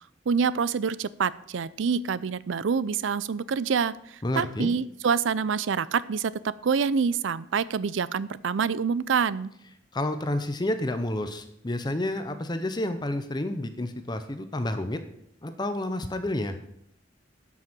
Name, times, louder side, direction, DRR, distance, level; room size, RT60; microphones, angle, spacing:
voice 1, 0.3-9.5, right 6 dB, 85° right, 18 dB, 0.5 m, -26 dB
voice 2, 4.2-4.7 9.9-15.0 15.4-16.6, left 1 dB, 20° left, 9 dB, 0.7 m, -30 dB
11.5 x 6.2 x 6.1 m, 0.73 s
head